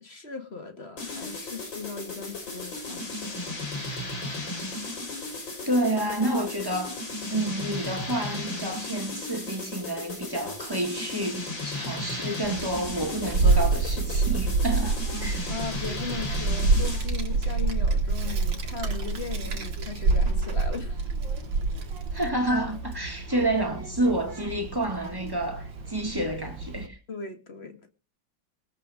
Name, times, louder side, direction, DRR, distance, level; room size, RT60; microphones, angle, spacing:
voice 1, 0.0-3.4 15.5-21.0 27.1-27.9, left 5 dB, 35° left, 2.0 m, -38 dB
sound 1, 1.0-17.2, left 2 dB, 75° left, 4.9 m, -35 dB
voice 2, 5.6-7.0 7.3-15.5 22.1-27.0, right 1 dB, 10° right, 2.4 m, -29 dB
Child speech kid speaking, 12.4-26.9, right 3 dB, 70° right, 2.3 m, -27 dB
20.5 x 8.3 x 5.1 m
omnidirectional pair, 2.1 m